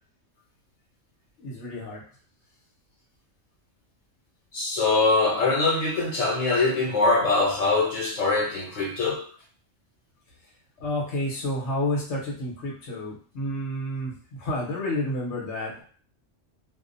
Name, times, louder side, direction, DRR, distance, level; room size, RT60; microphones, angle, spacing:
voice 1, 1.4-2.0 10.8-14.1 14.4-15.8, left 1 dB, 65° left, -2 dB, 1.1 m, -30 dB
voice 2, 4.5-9.2, left 3 dB, 85° left, -3 dB, 1.1 m, -23 dB
2.6 x 2.0 x 2.5 m, 0.43 s
omnidirectional pair, 1.3 m